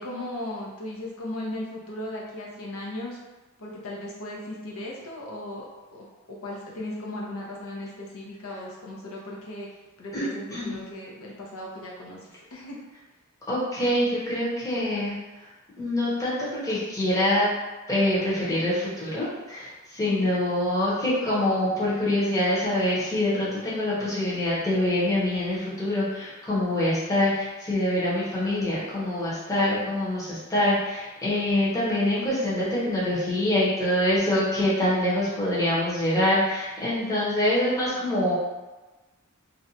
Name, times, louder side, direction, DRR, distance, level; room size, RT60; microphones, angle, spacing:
voice 1, 0.0-3.2 3.6-5.7 5.9-9.7 10.0-12.2 12.5-12.8 20.1-20.3, left 1 dB, 75° left, -3 dB, 0.6 m, -36 dB
voice 2, 10.1-10.8 13.5-15.1 15.8-16.4 16.6-17.5 17.9-38.4, left 1 dB, 15° left, -8 dB, 0.8 m, -25 dB
2.6 x 2.2 x 2.7 m, 1.1 s
head